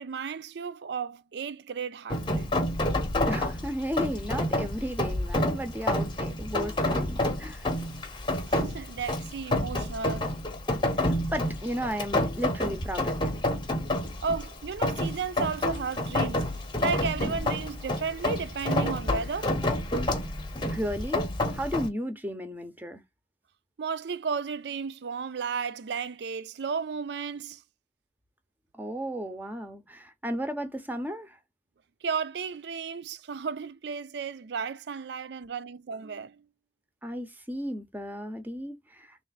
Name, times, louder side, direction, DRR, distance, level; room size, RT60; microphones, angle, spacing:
voice 1, 0.0-2.5 8.5-10.3 14.2-19.6 23.8-27.6 32.0-36.4, right 5 dB, 65° right, 0.4 m, -34 dB
Rain, 2.1-21.9, left 1 dB, 25° left, 0.7 m, -29 dB
voice 2, 3.3-7.7 11.0-13.3 20.6-23.0 28.7-31.4 37.0-39.2, equal, 10° right, 0.6 m, -34 dB
3.2 x 2.5 x 4.0 m
head